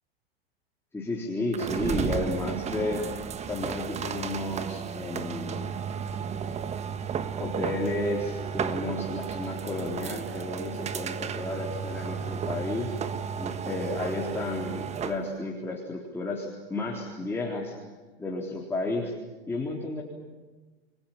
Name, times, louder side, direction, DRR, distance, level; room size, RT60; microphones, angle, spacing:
voice 1, 0.9-5.7 7.4-12.9 13.4-17.8 18.2-19.1 19.5-20.0, left 2 dB, 10° left, -3 dB, 3.9 m, -32 dB
sound 1, 1.5-15.3, right 7 dB, 20° right, 1.4 m, -33 dB
30.0 x 22.5 x 7.4 m, 1.3 s
hypercardioid pair, 120°, 30 cm